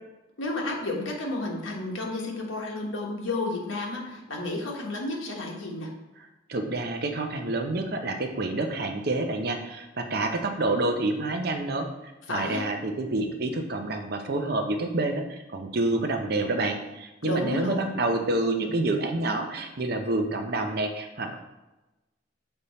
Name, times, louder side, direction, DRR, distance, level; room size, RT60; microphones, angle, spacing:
voice 1, 0.4-5.9 12.3-12.6 17.2-18.0, left 2 dB, 85° left, -1 dB, 1.3 m, -31 dB
voice 2, 6.5-11.9 12.3-21.3, right 2 dB, 50° right, 5 dB, 0.6 m, -28 dB
6.9 x 3.6 x 4.1 m, 1.0 s
head